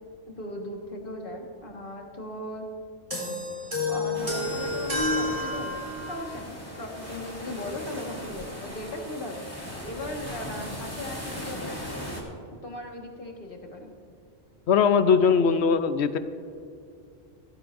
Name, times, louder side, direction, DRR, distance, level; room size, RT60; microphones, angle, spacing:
voice 1, 0.4-2.7 3.9-11.8 12.6-13.9, left 1 dB, 50° left, 1 dB, 1.8 m, -38 dB
sound 1, 3.1-6.3, left 2 dB, 30° right, 3.7 m, -29 dB
sound 2, 4.1-12.2, equal, 10° left, 2.5 m, -39 dB
voice 2, 14.7-16.2, left 6 dB, 70° left, 11 dB, 0.9 m, -20 dB
17.5 x 15.0 x 2.6 m, 2.4 s
omnidirectional pair, 1.2 m